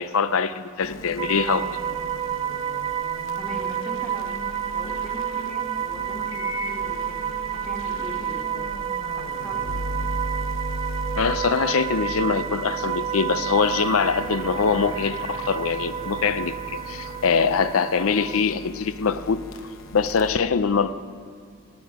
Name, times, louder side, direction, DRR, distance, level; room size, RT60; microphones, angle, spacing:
voice 1, 0.0-1.7 11.2-19.4 19.9-20.9, left 5 dB, 85° left, 13 dB, 0.5 m, -23 dB
sound 1, 0.8-20.4, equal, 70° left, 1.0 m, -37 dB
sound 2, 1.2-18.4, right 9 dB, 25° right, 0.4 m, -30 dB
voice 2, 3.4-4.4 4.7-8.7 9.2-9.8, equal, 5° left, 1 dB, 1.4 m, -40 dB
18.0 x 9.3 x 4.8 m, 2.3 s
head